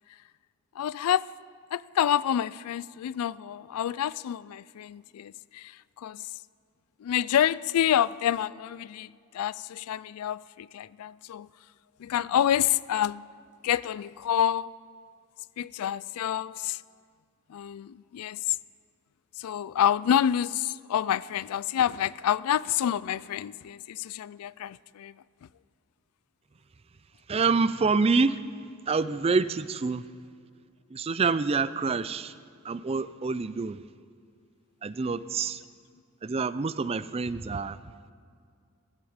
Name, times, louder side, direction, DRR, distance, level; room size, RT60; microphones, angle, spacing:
voice 1, 0.8-1.3 1.7-6.2 7.0-11.5 12.0-13.3 13.6-14.7 15.6-16.8 17.5-18.6 19.4-25.1, left 10 dB, 85° left, 0.3 m, -28 dB
voice 2, 27.3-28.4 28.9-30.1 30.9-32.3 32.6-33.8 34.8-35.6 36.2-37.8, right 4 dB, 25° right, 0.4 m, -27 dB
16.0 x 14.5 x 5.0 m
head